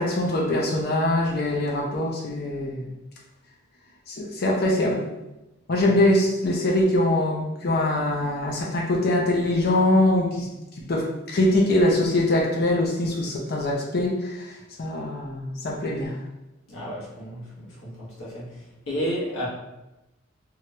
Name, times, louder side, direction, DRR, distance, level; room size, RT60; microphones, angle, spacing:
voice 1, 0.0-2.9 4.1-5.0 5.7-10.5 10.9-14.5 14.8-16.2, left 1 dB, 50° left, -1 dB, 0.5 m, -23 dB
voice 2, 16.7-19.5, equal, 80° left, -6 dB, 1.1 m, -32 dB
2.9 x 2.4 x 3.0 m, 0.97 s
head